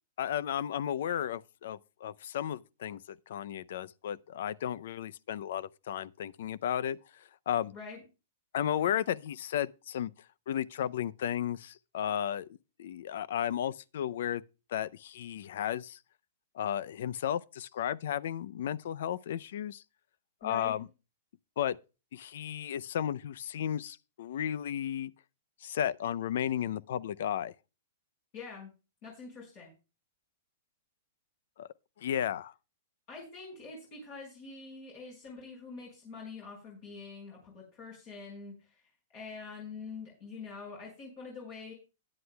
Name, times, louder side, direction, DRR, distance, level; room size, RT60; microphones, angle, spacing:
voice 1, 0.2-7.0 7.5-7.7 8.5-10.1 10.5-12.5 12.8-14.4 14.7-16.0 16.5-19.8 20.4-20.9 21.6-21.8 22.1-25.1 25.6-27.5 31.6-31.7 32.0-32.5, left 10 dB, 65° left, 0.5 m, -34 dB
voice 2, 7.7-8.0 20.4-20.8 28.3-28.7 29.0-29.7 33.1-38.8 39.1-41.7, left 4 dB, 40° left, 4.9 m, -45 dB
16.5 x 9.7 x 2.3 m
hypercardioid pair, 155°, 0 cm